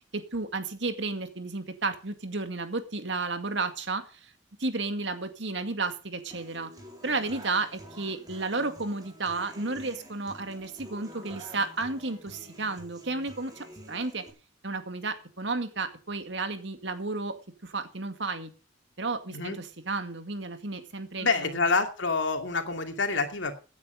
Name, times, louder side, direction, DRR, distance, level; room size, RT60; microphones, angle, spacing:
voice 1, 0.1-4.3 4.6-6.7 7.0-14.2 14.6-17.4 17.6-18.5 19.0-21.5, right 3 dB, 65° right, 8 dB, 2.2 m, -32 dB
Human voice / Acoustic guitar, 6.3-14.3, right 1 dB, 20° right, 4.2 m, -48 dB
voice 2, 19.3-19.6 21.2-23.6, left 4 dB, 70° left, 6 dB, 2.5 m, -27 dB
16.0 x 9.6 x 5.1 m, 0.34 s
head